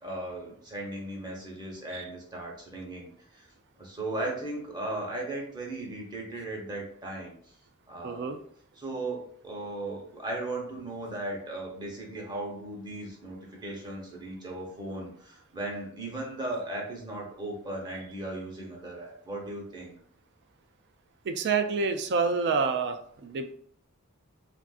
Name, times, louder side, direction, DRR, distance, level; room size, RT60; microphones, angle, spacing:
voice 1, 0.0-3.4 3.8-7.3 7.9-8.3 8.8-19.9, right 2 dB, 20° right, -1 dB, 0.9 m, -37 dB
voice 2, 8.0-8.4 21.2-23.5, right 5 dB, 50° right, 8 dB, 0.3 m, -28 dB
3.4 x 2.5 x 2.3 m, 0.63 s
head